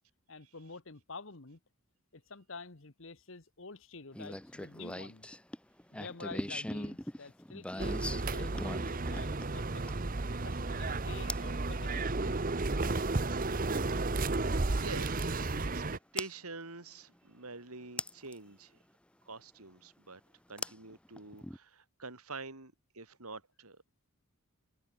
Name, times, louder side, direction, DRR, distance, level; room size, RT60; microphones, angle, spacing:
voice 1, 0.3-1.6 2.1-5.3 5.9-9.8 10.4-12.4, left 3 dB, 60° left, 1.4 m, -49 dB
sound 1, 4.1-10.2 11.3-11.5 13.4-13.5 16.2-16.3 18.0-18.4 20.6-21.6, left 1 dB, 5° left, 0.5 m, -40 dB
sound 2, 7.8-16.0, right 3 dB, 40° right, 0.9 m, -33 dB
voice 2, 14.7-18.7 19.3-20.2 20.5-23.8, right 3 dB, 85° right, 4.0 m, -46 dB
head